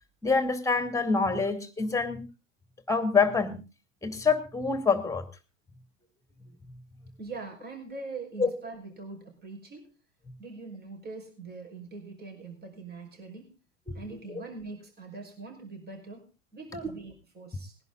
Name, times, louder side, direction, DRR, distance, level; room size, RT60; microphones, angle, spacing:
voice 1, 0.2-2.2 2.9-3.6 4.0-5.2 8.4-8.5 13.9-14.0, left 4 dB, 10° left, 10 dB, 2.6 m, -26 dB
voice 2, 7.2-9.9 10.4-13.5 13.9-16.3 16.5-17.8, right 3 dB, 25° right, 2 dB, 5.6 m, -42 dB
21.0 x 11.0 x 4.0 m, 0.32 s
figure-of-eight pair, 80°, 37 cm